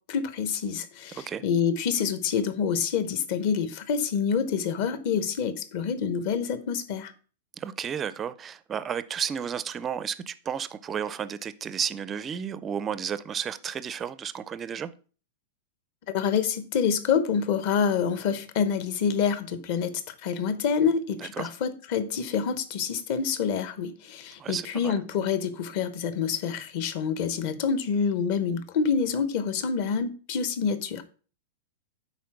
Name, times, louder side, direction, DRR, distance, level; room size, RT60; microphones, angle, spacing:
voice 1, 0.1-7.1 16.1-31.0, left 6 dB, 45° left, 1.0 m, -27 dB
voice 2, 7.6-14.9 21.2-21.5 24.4-24.9, right 8 dB, 15° right, 0.4 m, -32 dB
9.5 x 4.2 x 5.9 m
supercardioid pair, 170°, 0 cm